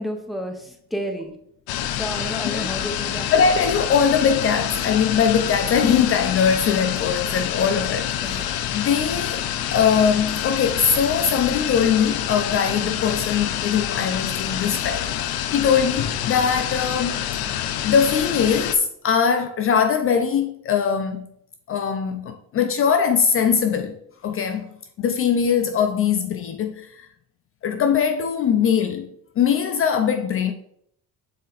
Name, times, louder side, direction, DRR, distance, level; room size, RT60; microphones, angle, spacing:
voice 1, 0.0-1.4 2.0-3.3 8.2-8.5, equal, ahead, 0.7 m, -31 dB
sound 1, 1.7-18.8, left 10 dB, 90° left, 0.7 m, -27 dB
voice 2, 3.3-8.4 8.7-9.4 9.7-17.2 17.8-21.2 21.7-23.9 24.2-24.7 25.0-27.0 27.6-29.1 29.4-30.5, left 7 dB, 40° left, 0.5 m, -21 dB
6.7 x 4.1 x 4.0 m
cardioid pair, 155°, 35 cm